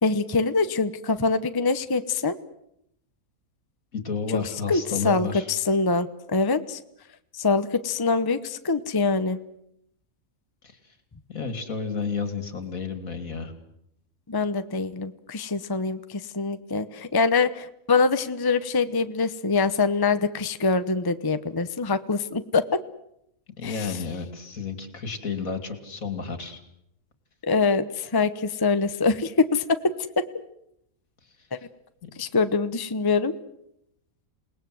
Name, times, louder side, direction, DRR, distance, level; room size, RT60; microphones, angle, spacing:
voice 1, 0.0-2.4 4.7-6.8 7.3-9.4 14.3-22.6 23.6-23.9 27.5-29.8 32.2-33.3, left 4 dB, 20° left, 11 dB, 0.8 m, -24 dB
voice 2, 3.9-5.5 10.6-10.8 11.3-13.5 23.6-26.6, left 5 dB, 70° left, 8 dB, 3.0 m, -31 dB
28.5 x 19.5 x 7.8 m, 0.78 s
omnidirectional pair, 1.5 m